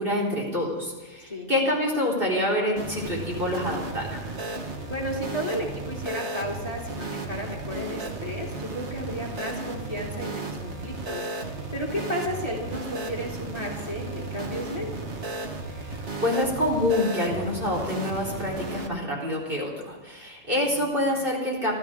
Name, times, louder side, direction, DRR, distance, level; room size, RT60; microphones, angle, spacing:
voice 1, 0.0-4.2 15.8-21.7, left 1 dB, 45° right, -3 dB, 4.2 m, -27 dB
sound 1, 2.8-18.9, right 3 dB, 65° right, 1.7 m, -34 dB
voice 2, 4.9-15.1 20.5-21.0, equal, 30° left, -3 dB, 3.1 m, -33 dB
28.0 x 13.5 x 3.7 m, 1.2 s
omnidirectional pair, 1.3 m